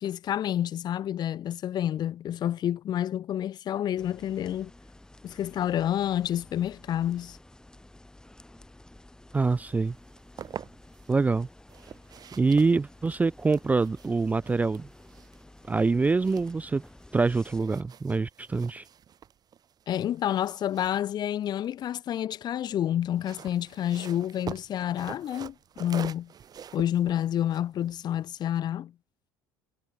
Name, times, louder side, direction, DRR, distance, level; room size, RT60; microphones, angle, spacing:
voice 1, 0.0-4.7 5.2-7.4 19.9-26.3 26.7-28.9, left 11 dB, 45° left, 0.7 m, -29 dB
sound 1, 4.0-17.6, left 1 dB, 5° left, 1.6 m, -52 dB
voice 2, 9.3-9.9 11.1-11.5 12.4-14.9 15.7-16.8 17.1-18.8, right 4 dB, 15° right, 0.3 m, -25 dB
sound 2, 10.0-11.1 11.7-17.1 17.4-22.0 23.0-28.6, right 8 dB, 40° right, 2.0 m, -46 dB
hypercardioid pair, 75°, 10 cm